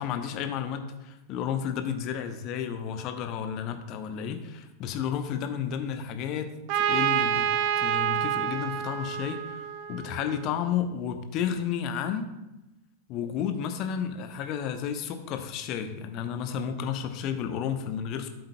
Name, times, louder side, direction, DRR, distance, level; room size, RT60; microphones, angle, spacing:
voice 1, 0.0-7.4 7.8-12.3 13.1-18.3, left 8 dB, 40° left, 8 dB, 0.8 m, -32 dB
Trumpet, 6.7-10.4, right 9 dB, 45° right, 0.6 m, -28 dB
12.0 x 7.7 x 2.2 m, 0.97 s
figure-of-eight pair, 90°, 0 cm